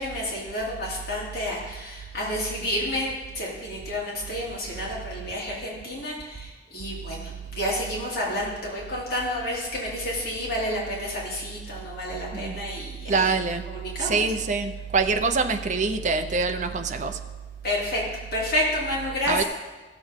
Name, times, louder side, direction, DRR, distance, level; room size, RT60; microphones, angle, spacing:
voice 1, 0.0-13.3 13.7-14.3 17.6-18.0 18.3-19.4, left 1 dB, 60° left, -5 dB, 3.1 m, -30 dB
voice 2, 13.1-13.7 14.0-17.2 19.3-19.4, right 4 dB, 45° right, 7 dB, 0.6 m, -25 dB
15.5 x 6.9 x 3.6 m, 1.2 s
head